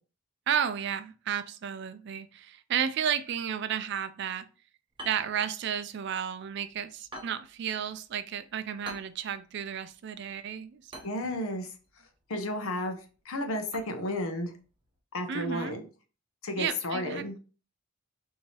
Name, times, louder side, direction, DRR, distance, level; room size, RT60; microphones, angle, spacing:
voice 1, 0.5-4.5 5.0-11.1 15.3-15.8 16.6-17.4, right 8 dB, 50° right, 12 dB, 0.3 m, -33 dB
sound 1, 4.9-15.0, right 1 dB, 20° right, 0.7 m, -51 dB
voice 2, 11.0-11.7 12.3-13.0 13.2-14.5 15.1-15.8 16.4-17.4, left 1 dB, 75° left, 6 dB, 0.8 m, -32 dB
4.5 x 2.8 x 2.9 m, 0.36 s
head